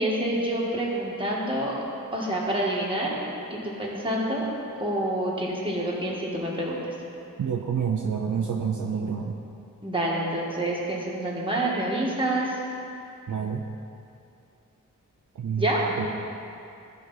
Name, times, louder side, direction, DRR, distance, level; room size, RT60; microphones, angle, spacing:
voice 1, 0.0-1.8 2.1-3.2 3.5-4.4 4.8-6.9 9.8-12.6 15.6-16.0, right 1 dB, 15° right, -5 dB, 1.7 m, -27 dB
voice 2, 7.4-9.4 13.3-13.6 15.4-15.7 16.0-16.1, right 7 dB, 60° right, 1 dB, 0.6 m, -28 dB
15.0 x 5.1 x 4.0 m, 2.7 s
wide cardioid pair, 145°, 33 cm